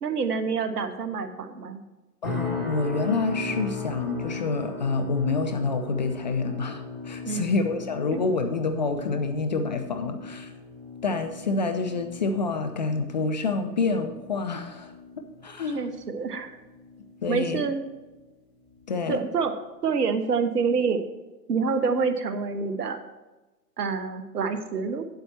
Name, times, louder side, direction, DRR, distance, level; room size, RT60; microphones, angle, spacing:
voice 1, 0.0-1.8 7.2-7.5 8.1-8.2 15.7-16.5 17.3-17.8 19.1-19.5 19.8-21.1 21.5-23.0 23.8-25.0, right 5 dB, 70° right, 9 dB, 1.1 m, -27 dB
voice 2, 2.2-10.5 11.0-14.9 15.4-16.0 17.2-17.6 18.9-19.2, left 4 dB, 30° left, 6 dB, 0.4 m, -27 dB
sound 1, 2.2-17.4 17.8-18.2 18.7-18.9, left 3 dB, ahead, 3.0 m, -38 dB
8.7 x 8.0 x 4.4 m, 1.1 s
figure-of-eight pair, 125°, 49 cm